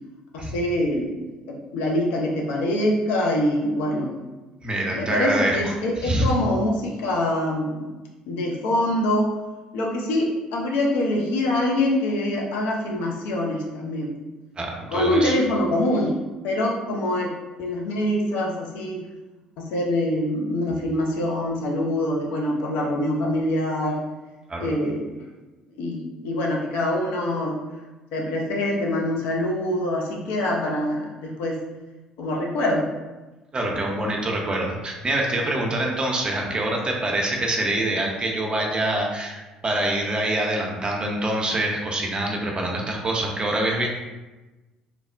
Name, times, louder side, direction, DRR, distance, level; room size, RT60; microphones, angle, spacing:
voice 1, 0.3-1.2 1.5-4.1 4.9-7.8 8.3-9.3 9.7-14.1 14.9-16.1 16.4-17.3 17.6-19.0 19.6-24.0 24.6-25.1 25.8-27.6 28.1-31.6 32.2-33.0, left 1 dB, 65° left, -1 dB, 0.5 m, -24 dB
voice 2, 4.6-6.2 14.6-15.3 24.5-24.7 33.5-43.9, right 1 dB, 30° right, 0 dB, 0.6 m, -25 dB
3.1 x 2.0 x 2.4 m, 1.1 s
figure-of-eight pair, 55°, 3 cm